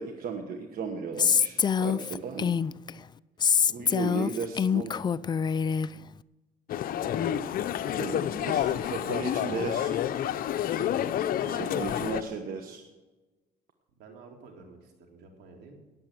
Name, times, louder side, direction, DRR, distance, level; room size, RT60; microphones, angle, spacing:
voice 1, 0.0-2.5 3.7-5.0 7.9-9.9 11.4-12.8, right 5 dB, 60° right, 4 dB, 1.4 m, -35 dB
Female speech woman speaking, 1.2-2.9 3.4-5.9, left 7 dB, 25° left, 0.3 m, -25 dB
voice 2, 3.6-4.0 7.0-7.4 11.5-12.4 14.0-15.7, right 3 dB, 85° right, 2 dB, 3.4 m, -50 dB
sound 1, 6.7-12.2, left 10 dB, 60° left, 0.7 m, -29 dB
18.5 x 7.6 x 7.7 m, 1.2 s
cardioid pair, 110°, 17 cm